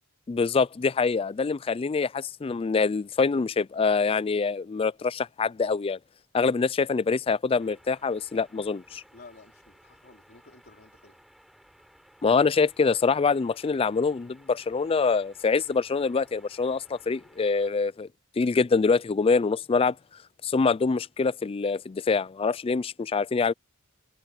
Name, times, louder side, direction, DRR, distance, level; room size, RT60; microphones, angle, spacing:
voice 1, 0.3-6.0 6.3-9.0 12.2-18.1 18.4-20.0 20.4-23.5, left 4 dB, 25° left, 0.3 m, -25 dB
sound 1, 7.6-17.7, equal, ahead, 4.0 m, -58 dB
voice 2, 9.1-11.2, left 3 dB, 45° left, 3.7 m, -52 dB
head